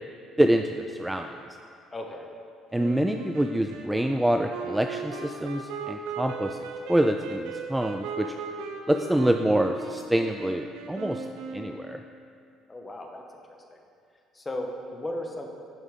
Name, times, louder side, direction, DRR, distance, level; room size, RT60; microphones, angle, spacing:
voice 1, 0.4-1.4 2.7-8.3 8.9-11.3 11.5-12.0, right 1 dB, 5° right, 5 dB, 0.3 m, -26 dB
voice 2, 1.9-2.3 12.7-13.8 14.3-15.5, left 1 dB, 20° left, 2 dB, 1.0 m, -36 dB
Wind instrument woodwind instrument, 2.7-12.2, right 5 dB, 85° right, 0.6 m, -38 dB
9.7 x 5.5 x 3.6 m, 2.4 s
supercardioid pair, 90°, 0 cm